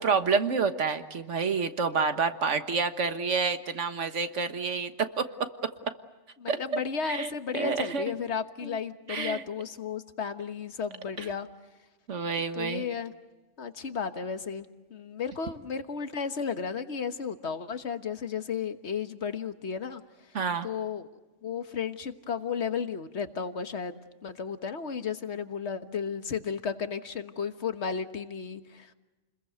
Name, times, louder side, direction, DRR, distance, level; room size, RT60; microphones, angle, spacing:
voice 1, 0.0-4.9 5.2-5.3 6.5-6.6 7.0-8.1 8.6-8.8 9.1-9.4 11.2-11.3 12.1-12.9 20.3-20.7, right 5 dB, 80° right, 9 dB, 1.7 m, -28 dB
voice 2, 6.4-11.5 12.6-13.1 13.6-20.0 20.6-21.1 21.4-28.9, left 6 dB, 65° left, 9 dB, 1.6 m, -34 dB
29.5 x 21.5 x 8.0 m, 1.1 s
omnidirectional pair, 1.2 m